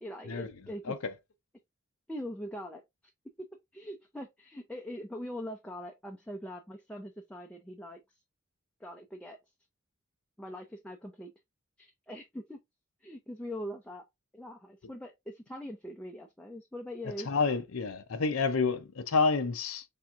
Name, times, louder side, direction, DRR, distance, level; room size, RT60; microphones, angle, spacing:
voice 1, 0.0-1.0 2.1-2.8 3.4-3.5 3.7-8.0 8.8-9.4 10.4-11.3 11.8-12.6 13.0-14.0 14.3-17.3, equal, 5° left, 0.4 m, -42 dB
voice 2, 17.3-19.8, left 4 dB, 75° left, 0.6 m, -29 dB
4.4 x 3.4 x 2.4 m
head